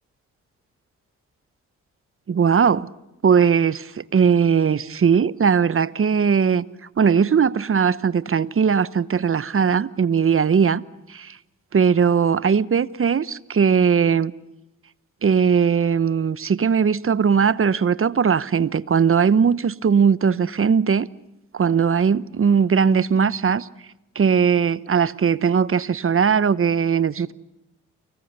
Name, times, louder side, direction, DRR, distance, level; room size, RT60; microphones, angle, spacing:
voice 1, 2.3-2.9 3.2-6.6 7.0-10.8 11.1-11.4 11.7-14.3 15.2-21.1 21.5-23.7 24.1-27.3, right 6 dB, 40° right, 1.0 m, -19 dB
29.0 x 23.5 x 6.8 m
supercardioid pair, 50°, 33 cm